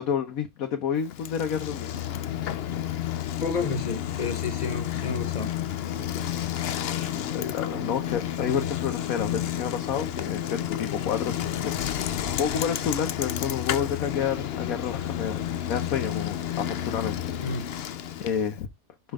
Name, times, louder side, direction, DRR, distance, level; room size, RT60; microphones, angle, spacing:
voice 1, 0.0-1.9 7.0-17.7 18.2-18.7, left 8 dB, 75° left, 1.3 m, -30 dB
Bicycle, 1.0-18.6, left 11 dB, 60° left, 0.7 m, -31 dB
voice 2, 3.1-5.5 5.9-6.3 8.5-8.7 17.4-17.7, left 4 dB, 30° left, 1.3 m, -32 dB
5.9 x 5.4 x 3.6 m
omnidirectional pair, 1.5 m